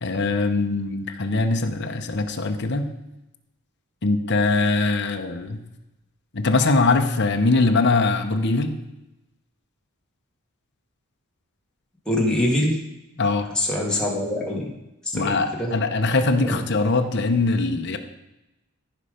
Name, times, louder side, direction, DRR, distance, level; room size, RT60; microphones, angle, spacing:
voice 1, 0.0-2.9 4.0-5.6 6.3-8.7 13.2-13.5 15.1-18.0, left 3 dB, 50° left, 5 dB, 0.9 m, -22 dB
voice 2, 12.1-12.8 13.6-14.6 15.1-15.7 16.4-16.6, left 1 dB, 5° left, -3 dB, 1.9 m, -24 dB
14.0 x 5.7 x 5.1 m, 0.94 s
head